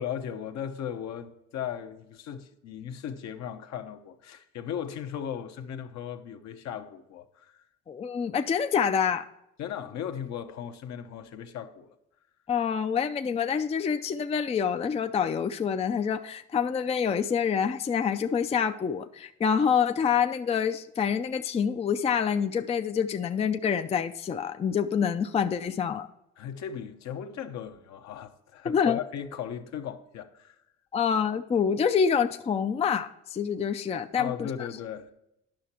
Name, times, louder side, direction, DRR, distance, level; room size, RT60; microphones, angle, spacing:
voice 1, 0.0-7.6 9.6-11.9 26.4-30.6 34.2-35.1, left 9 dB, 65° left, 1.0 m, -37 dB
voice 2, 7.9-9.3 12.5-26.1 28.6-29.0 30.9-34.7, left 7 dB, 20° left, 0.4 m, -27 dB
10.5 x 5.9 x 4.3 m
cardioid pair, 95°, 30 cm